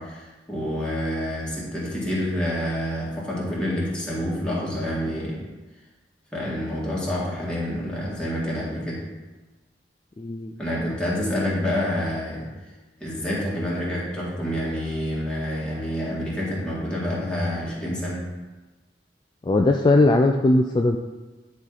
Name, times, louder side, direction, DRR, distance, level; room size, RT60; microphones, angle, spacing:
voice 1, 0.0-5.4 6.3-9.0 10.6-12.5 13.0-18.2, equal, 5° left, -7 dB, 1.9 m, -28 dB
voice 2, 10.2-10.9 19.4-21.0, left 2 dB, 25° left, 3 dB, 0.3 m, -20 dB
9.7 x 4.4 x 4.0 m, 1.2 s
head